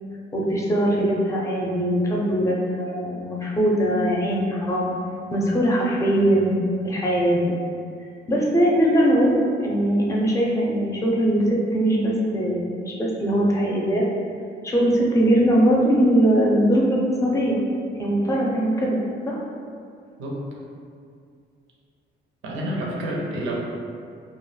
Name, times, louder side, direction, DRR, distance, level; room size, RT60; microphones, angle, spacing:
voice 1, 0.3-4.9 5.3-6.5 6.8-7.5 8.3-14.0 14.6-17.6 18.0-19.4, right 1 dB, 15° left, -3 dB, 0.5 m, -21 dB
voice 2, 20.2-20.5 22.4-23.6, right 1 dB, 85° right, -2 dB, 0.5 m, -29 dB
2.1 x 2.0 x 3.1 m, 2.3 s
cardioid pair, 90°, 20 cm